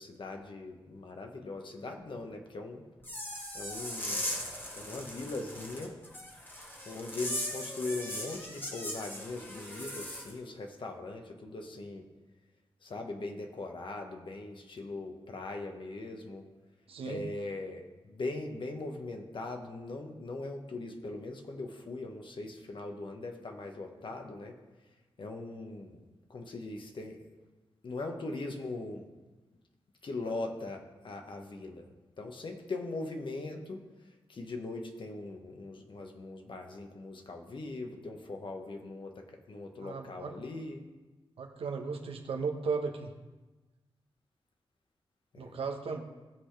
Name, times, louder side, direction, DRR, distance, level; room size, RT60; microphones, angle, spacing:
voice 1, 0.0-2.8 3.5-4.3 4.7-6.0 6.8-12.1 12.8-16.5 17.0-24.6 25.2-26.0 26.3-27.4 27.8-29.1 30.0-31.9 32.2-40.8 45.3-45.6, left 2 dB, 60° left, 3 dB, 1.4 m, -40 dB
sound 1, 3.0-10.3, left 1 dB, 20° left, 1.9 m, -39 dB
voice 2, 16.9-17.2 39.8-40.3 41.4-43.1 45.4-46.0, right 5 dB, 85° right, 3 dB, 1.1 m, -35 dB
17.5 x 5.9 x 3.3 m, 1.2 s
cardioid pair, 85°, 10 cm